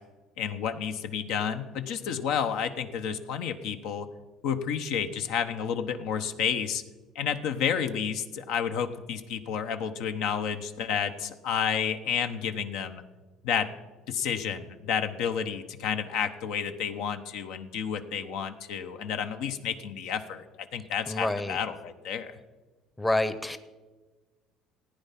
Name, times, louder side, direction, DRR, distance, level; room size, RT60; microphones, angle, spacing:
voice 1, 0.4-4.1 4.4-6.8 7.1-13.0 13.4-13.7 14.1-22.4, left 7 dB, 75° left, 8 dB, 0.9 m, -30 dB
voice 2, 21.1-21.6 23.0-23.6, left 2 dB, 10° left, 12 dB, 0.7 m, -27 dB
15.0 x 9.3 x 5.8 m, 1.3 s
cardioid pair, 105°, 0 cm